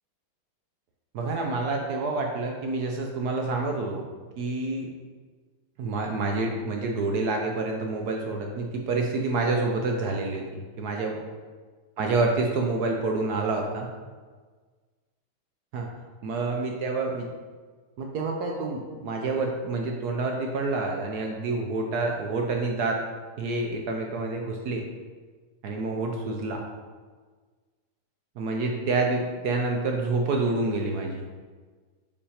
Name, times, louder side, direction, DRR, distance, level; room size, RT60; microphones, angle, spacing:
voice 1, 1.1-4.0 4.4-4.9 5.8-11.2 12.0-13.9 15.7-15.9 16.2-17.2 18.0-23.0 23.4-24.8 25.6-26.7 28.4-31.2, right 3 dB, 65° right, 2 dB, 1.0 m, -28 dB
5.4 x 4.8 x 4.9 m, 1.4 s
omnidirectional pair, 2.3 m